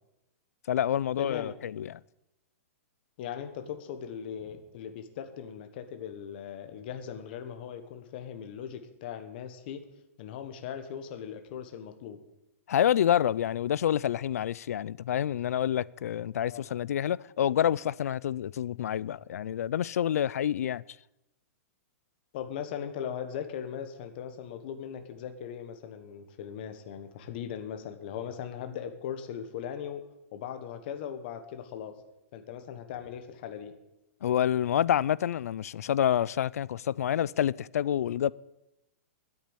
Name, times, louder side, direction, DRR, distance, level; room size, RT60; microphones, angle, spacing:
voice 1, 0.7-2.0 12.7-20.8 34.2-38.3, left 10 dB, 80° left, 0.4 m, -28 dB
voice 2, 1.2-1.5 3.2-9.8 10.2-12.2 16.5-16.7 22.3-30.0 30.3-31.9 32.3-33.7, left 8 dB, 40° left, 1.4 m, -39 dB
10.5 x 8.7 x 9.8 m
hypercardioid pair, 165°, 8 cm